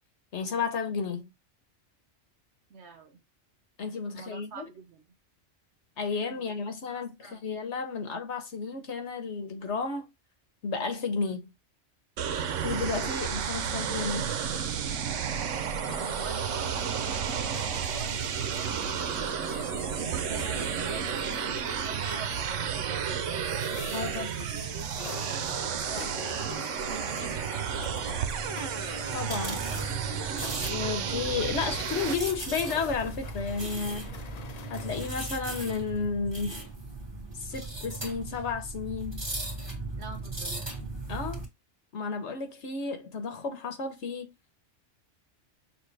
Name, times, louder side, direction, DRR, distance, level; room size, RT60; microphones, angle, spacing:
voice 1, 0.3-1.3 3.8-4.7 6.0-10.1 10.6-11.5 12.6-14.3 23.9-24.3 29.1-29.6 30.7-34.1 34.7-36.6 37.3-39.3 41.1-41.4 41.9-44.3, left 5 dB, 75° left, 1.3 m, -32 dB
voice 2, 2.7-3.2 4.1-5.0 6.3-6.5 6.9-7.4 16.0-18.8 20.0-22.8 24.0-24.5 24.7-26.1 26.6-28.0 40.0-40.8, right 5 dB, 70° right, 1.3 m, -45 dB
sound 1, 12.2-32.1, right 7 dB, 90° right, 1.1 m, -32 dB
sound 2, 15.9-35.1, left 6 dB, 45° left, 0.6 m, -45 dB
sound 3, 27.8-41.5, right 3 dB, 20° right, 1.7 m, -38 dB
6.2 x 2.4 x 3.2 m
omnidirectional pair, 1.2 m